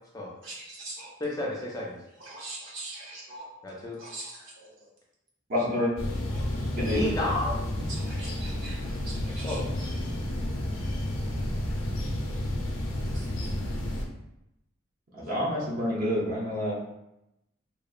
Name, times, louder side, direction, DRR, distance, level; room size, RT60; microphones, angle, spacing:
voice 1, 0.4-1.1 2.2-3.5 4.0-4.9 5.5-5.6 6.3-6.4 7.9-9.6 13.1-13.5, right 2 dB, 75° right, -4 dB, 0.9 m, -42 dB
voice 2, 1.2-2.0 3.6-4.0 6.8-7.6 9.4-9.7 15.2-15.7, left 2 dB, 20° left, -3 dB, 0.4 m, -32 dB
voice 3, 5.5-5.9 6.8-7.0 15.1-16.9, left 1 dB, 45° right, -5 dB, 0.7 m, -28 dB
sound 1, 6.0-14.1, left 1 dB, 90° left, 0.5 m, -31 dB
2.8 x 2.1 x 2.4 m, 0.87 s
head